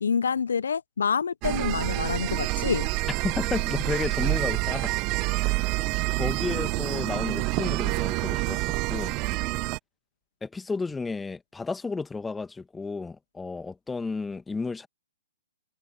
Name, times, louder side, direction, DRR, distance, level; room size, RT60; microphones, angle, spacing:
voice 1, 0.0-2.9, left 6 dB, 70° left, 0.6 m, -27 dB
sound 1, 1.4-9.8, right 25 dB, 30° right, 0.9 m, -27 dB
voice 2, 3.2-4.9 5.3-5.6 6.1-9.2 10.4-14.9, left 4 dB, 10° left, 2.0 m, -32 dB
figure-of-eight pair, 120°, 0 cm